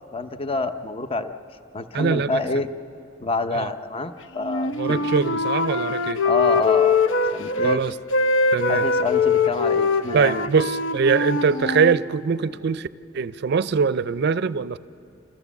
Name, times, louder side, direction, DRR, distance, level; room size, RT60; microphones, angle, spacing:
voice 1, 0.1-1.3 1.7-2.7 3.2-5.1 6.2-7.0 7.3-7.8 8.7-10.5, left 3 dB, 30° left, 10 dB, 0.7 m, -27 dB
voice 2, 1.9-2.4 3.5-3.7 4.6-6.2 7.6-7.9 8.5-8.8 10.1-12.9 13.1-14.8, right 5 dB, 60° right, 16 dB, 0.4 m, -22 dB
Wind instrument woodwind instrument, 4.4-7.8 8.1-12.0, left 4 dB, 85° left, 0.8 m, -22 dB
27.5 x 14.5 x 7.1 m, 2.6 s
head